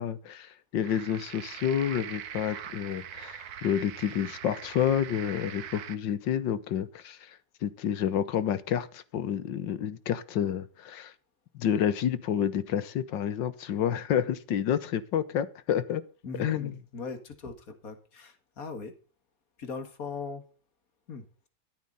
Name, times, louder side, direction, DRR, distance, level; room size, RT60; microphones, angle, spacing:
voice 1, 0.0-11.1 11.6-16.0 16.4-16.7, left 9 dB, 90° left, 1.8 m, -29 dB
sound 1, 0.8-6.0, right 9 dB, 65° right, 1.4 m, -42 dB
voice 2, 16.2-18.9 19.6-20.4 21.1-21.5, left 4 dB, 50° left, 2.3 m, -39 dB
13.0 x 12.0 x 4.1 m
omnidirectional pair, 1.9 m